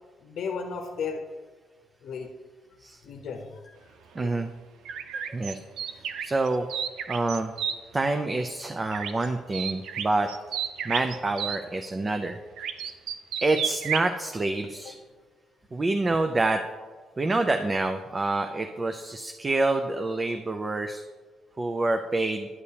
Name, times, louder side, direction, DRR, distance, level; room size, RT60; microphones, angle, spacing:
voice 1, 0.2-1.2 2.0-2.3 3.0-3.8 4.2-4.3, left 5 dB, 70° left, 3 dB, 0.7 m, -34 dB
voice 2, 4.1-4.5 5.3-5.6 5.9-6.7 7.1-7.5 7.9-10.3 10.8-12.4 13.4-15.0 15.7-16.6 17.2-21.0 21.6-22.5, right 2 dB, 30° right, 6 dB, 0.4 m, -27 dB
sound 1, 4.9-7.8 8.9-9.3 9.5-11.6 12.6-14.1, right 8 dB, 80° right, 0.5 m, -32 dB
11.0 x 6.7 x 2.8 m, 1.4 s
cardioid pair, 90°, 0 cm